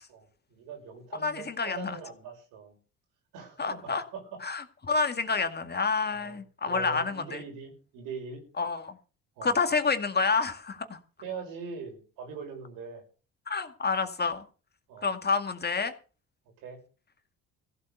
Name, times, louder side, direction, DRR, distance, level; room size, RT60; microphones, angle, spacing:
voice 1, 0.1-2.8 3.3-4.4 6.1-6.4 6.6-8.4 9.4-9.6 11.2-13.0 14.9-15.1 16.6-16.8, right 5 dB, 90° right, 4 dB, 6.1 m, -42 dB
voice 2, 1.2-2.0 3.6-4.0 4.4-7.4 8.6-9.0 9.4-11.0 13.5-14.4 15.0-15.9, left 4 dB, 30° left, 7 dB, 2.1 m, -28 dB
15.5 x 8.7 x 6.6 m, 0.37 s
cardioid pair, 85°, 31 cm